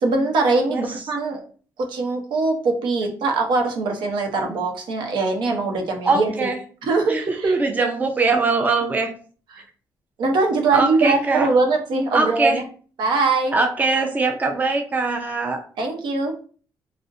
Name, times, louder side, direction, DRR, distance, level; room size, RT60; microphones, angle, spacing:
voice 1, 0.0-1.4 1.9-6.3 6.8-7.5 9.5-9.6 10.2-12.6 13.0-13.5 15.8-16.3, right 3 dB, 85° right, 2 dB, 0.7 m, -22 dB
voice 2, 6.1-6.6 7.1-9.1 10.7-11.5 12.1-12.6 13.5-15.6, right 3 dB, 20° right, 3 dB, 0.4 m, -21 dB
3.8 x 2.1 x 2.6 m, 0.42 s
cardioid pair, 130°, 8 cm